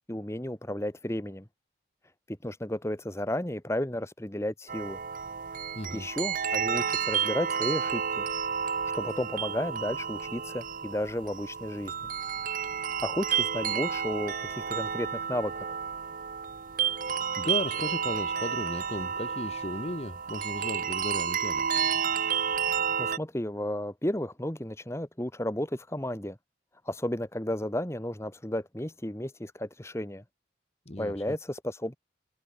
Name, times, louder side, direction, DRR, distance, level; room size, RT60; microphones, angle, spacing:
voice 1, 0.1-1.5 2.3-5.0 5.9-8.3 8.8-11.9 13.0-15.7 23.0-26.4 26.8-30.2 31.0-32.0, left 1 dB, 15° left, 1.6 m, -33 dB
sound 1, 4.7-23.2, right 7 dB, 45° right, 0.8 m, -31 dB
voice 2, 5.7-6.1 17.1-21.7 30.8-31.4, left 1 dB, 35° left, 1.4 m, -36 dB
head